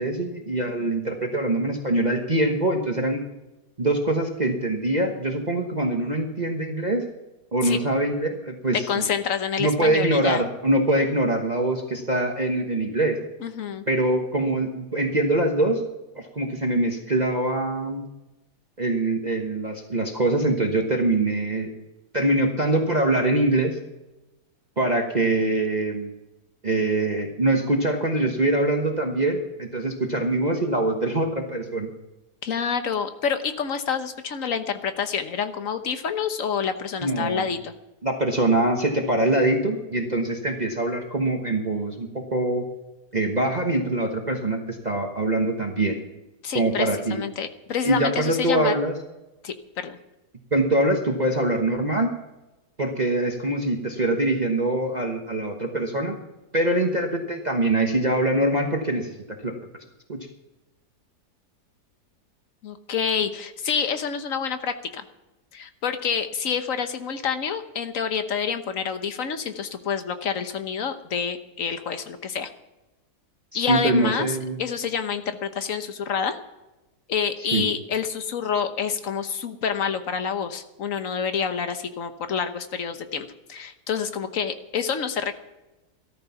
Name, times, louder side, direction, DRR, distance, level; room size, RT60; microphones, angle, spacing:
voice 1, 0.0-3.2 3.8-7.0 7.5-9.0 9.6-13.2 13.9-15.8 16.1-18.0 18.8-21.7 22.1-23.8 24.8-26.1 26.6-31.9 37.0-37.5 38.0-42.6 43.1-46.0 46.5-47.2 47.8-48.9 50.5-52.1 52.8-56.2 56.5-59.1 59.4-59.5 60.1-60.2 73.5-74.6 77.5-77.6, right 2 dB, 30° right, 2 dB, 1.2 m, -23 dB
voice 2, 8.7-10.4 13.4-13.8 32.4-37.7 46.4-48.7 49.4-50.0 62.6-65.0 65.5-72.5 73.5-76.4 77.1-85.4, left 7 dB, 55° left, 9 dB, 1.4 m, -28 dB
14.5 x 13.5 x 5.8 m, 1.0 s
omnidirectional pair, 1.8 m